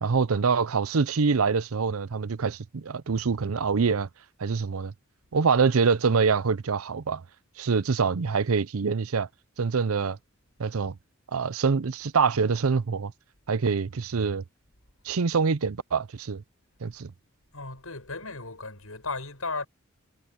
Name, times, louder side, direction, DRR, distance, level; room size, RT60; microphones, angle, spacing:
voice 1, 0.0-4.1 4.4-4.9 5.3-7.2 7.6-9.3 9.6-10.2 10.6-10.9 11.3-13.1 13.5-14.4 15.0-16.4 16.8-17.1, right 5 dB, 90° right, 0.6 m, -25 dB
voice 2, 17.5-19.7, left 3 dB, 85° left, 7.8 m, -35 dB
head